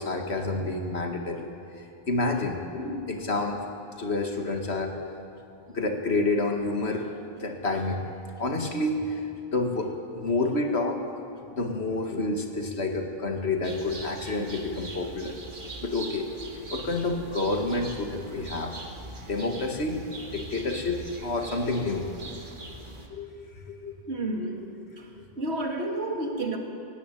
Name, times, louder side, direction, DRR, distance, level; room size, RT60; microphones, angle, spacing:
voice 1, 0.0-1.5 1.8-3.6 4.0-4.9 5.7-7.1 7.4-8.0 8.4-9.3 9.5-11.0 11.5-15.4 15.8-16.3 16.7-18.7 19.2-20.0 20.3-22.1 23.1-23.3 23.7-24.0 25.2-25.3, left 2 dB, 85° left, 3 dB, 2.2 m, -29 dB
sound 1, 13.6-23.1, right 2 dB, 50° right, 2.0 m, -42 dB
voice 2, 24.1-24.6 25.4-26.6, right 2 dB, 85° right, 2 dB, 2.5 m, -30 dB
18.5 x 15.5 x 9.2 m, 2.6 s
omnidirectional pair, 1.1 m